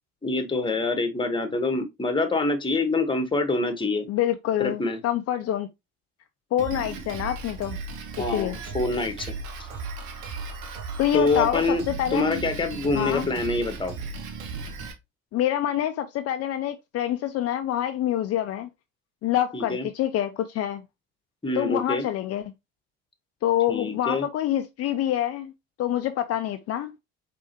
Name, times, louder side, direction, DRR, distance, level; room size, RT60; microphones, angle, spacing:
voice 1, 0.2-4.1 4.6-5.0 8.2-9.3 11.1-11.8 12.1-13.9 19.5-19.9 21.4-22.0 23.7-24.2, left 3 dB, 15° left, 1.2 m, -25 dB
voice 2, 4.1-5.7 6.5-7.8 8.3-8.6 11.0-12.4 12.9-13.3 15.3-18.7 19.2-20.8 21.6-22.4 23.4-25.5 25.8-26.9, left 12 dB, 50° left, 0.5 m, -26 dB
Drum kit, 6.6-14.9, right 4 dB, 80° right, 1.2 m, -36 dB
4.7 x 3.4 x 2.8 m
supercardioid pair, 85°, 31 cm